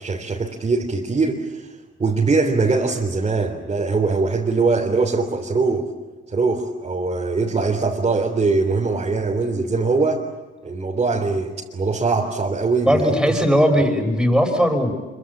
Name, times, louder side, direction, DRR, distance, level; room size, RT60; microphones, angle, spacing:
voice 1, 0.0-1.7 2.0-5.9 6.3-10.2 10.6-13.0, right 3 dB, 30° right, -1 dB, 3.6 m, -21 dB
voice 2, 12.8-14.9, equal, 5° right, 5 dB, 5.9 m, -18 dB
26.0 x 24.5 x 8.6 m, 1.2 s
cardioid pair, 90°, 20 cm